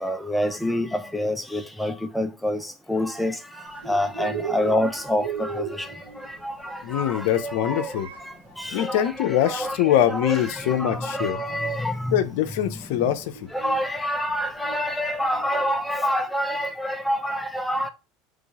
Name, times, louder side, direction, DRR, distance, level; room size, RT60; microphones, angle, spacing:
voice 1, 0.0-3.4 3.6-5.9 6.2-8.0 8.6-12.2 12.9-13.0 13.5-17.9, equal, 5° left, 0.8 m, -27 dB
Bird, 3.7-15.8, right 6 dB, 85° right, 1.3 m, -39 dB
voice 2, 6.8-8.1 8.7-11.4 12.1-13.5, left 11 dB, 70° left, 0.7 m, -23 dB
3.8 x 3.3 x 3.5 m
hypercardioid pair, 85°, 0 cm